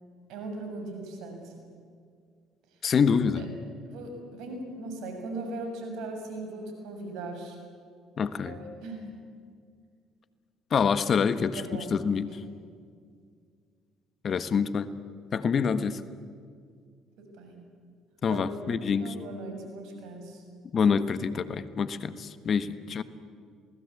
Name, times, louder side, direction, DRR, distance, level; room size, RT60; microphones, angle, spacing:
voice 1, 0.3-1.5 3.4-3.5 3.9-7.6 8.4-9.1 11.5-12.0 17.2-17.6 18.3-18.4 19.0-20.4 22.6-22.7, right 2 dB, 75° right, 4 dB, 6.9 m, -39 dB
voice 2, 2.8-3.4 8.2-8.6 10.7-12.4 14.2-14.9 15.3-16.0 18.2-19.1 20.7-23.0, left 6 dB, 50° left, 13 dB, 1.4 m, -26 dB
27.5 x 19.5 x 8.6 m, 2.1 s
hypercardioid pair, 65°, 0 cm